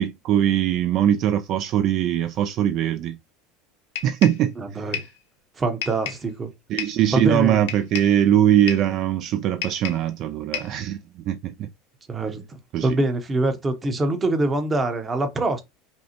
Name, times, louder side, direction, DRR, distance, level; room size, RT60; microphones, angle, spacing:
voice 1, 0.0-3.2 4.0-4.9 6.7-11.0 11.3-11.7 12.7-13.0, right 11 dB, 50° right, 0.3 m, -21 dB
sound 1, 4.0-4.5 4.9-5.2 5.8-6.3 6.8-7.1 7.7-8.2 8.7-9.0 9.6-10.1 10.5-10.8, left 10 dB, 85° left, 0.9 m, -32 dB
voice 2, 4.6-5.0 5.6-6.5 7.1-7.6 12.1-15.6, right 2 dB, 20° right, 0.8 m, -24 dB
5.2 x 2.1 x 2.9 m
supercardioid pair, 130°, 0 cm